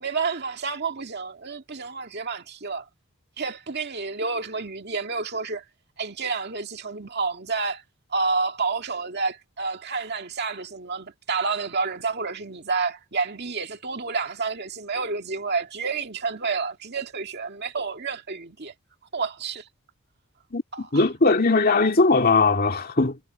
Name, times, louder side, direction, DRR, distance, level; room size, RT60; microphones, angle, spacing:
voice 1, 0.0-2.9 3.4-5.6 6.0-7.8 8.1-18.7 19.1-19.7 20.7-21.0, right 4 dB, 50° right, 2.2 m, -29 dB
voice 2, 20.5-23.2, left 3 dB, 40° left, 2.4 m, -20 dB
head